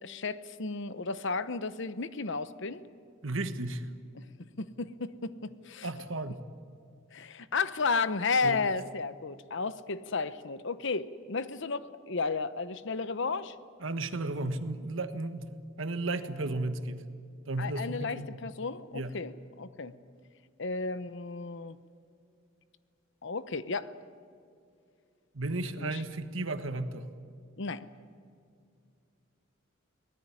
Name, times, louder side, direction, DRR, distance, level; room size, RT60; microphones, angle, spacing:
voice 1, 0.0-2.8 4.2-4.3 4.6-5.9 7.1-13.5 17.6-19.9 20.6-21.8 23.2-23.9 25.8-26.0 27.6-27.9, left 4 dB, 65° left, 14 dB, 0.9 m, -33 dB
voice 2, 3.2-3.9 5.8-6.4 8.4-8.6 13.8-15.5 15.8-17.0 17.5-18.4 18.9-19.2 25.3-27.1, right 2 dB, 70° right, 10 dB, 1.4 m, -34 dB
23.5 x 18.5 x 9.8 m, 2.4 s
head